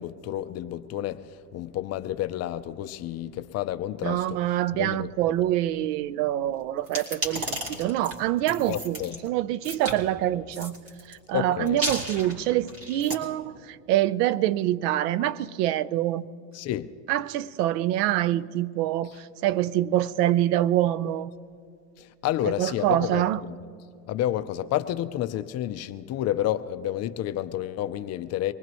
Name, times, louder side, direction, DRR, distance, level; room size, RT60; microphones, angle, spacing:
voice 1, 0.0-4.4 4.7-5.1 8.7-9.3 11.3-11.8 16.5-16.9 22.0-23.2 24.1-28.5, left 12 dB, 35° left, 0.5 m, -30 dB
voice 2, 4.0-9.0 9.2-10.7 11.1-16.3 17.1-21.3 22.6-23.4, right 13 dB, 65° right, 0.7 m, -25 dB
sound 1, 6.9-9.2 9.6-10.0 10.5-11.1 11.7-13.2, right 1 dB, 25° right, 3.0 m, -33 dB
24.5 x 19.0 x 3.0 m
supercardioid pair, 115°, 50 cm